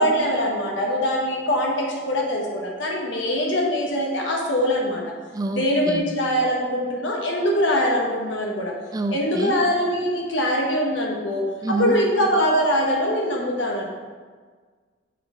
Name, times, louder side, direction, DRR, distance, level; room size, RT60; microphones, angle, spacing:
voice 1, 0.0-5.0 5.5-8.7 9.1-13.8, equal, 75° left, -1 dB, 1.2 m, -23 dB
voice 2, 5.3-6.1 8.9-9.6 11.6-12.0, right 2 dB, 20° right, 6 dB, 0.3 m, -27 dB
6.4 x 4.1 x 4.3 m, 1.5 s
head